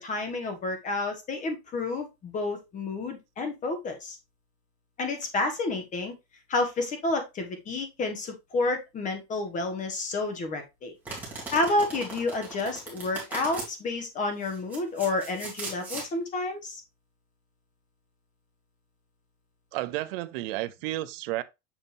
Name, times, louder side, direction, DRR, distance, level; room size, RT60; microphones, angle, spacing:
voice 1, 0.0-4.2 5.0-6.1 6.5-10.9 11.5-16.8, left 2 dB, 20° left, 1.4 m, -30 dB
Domestic sounds home sounds, 11.0-13.7 14.4-16.1, right 3 dB, 5° right, 2.8 m, -39 dB
voice 2, 19.7-21.4, right 17 dB, 50° right, 0.6 m, -32 dB
7.3 x 5.3 x 2.6 m
supercardioid pair, 165°, 36 cm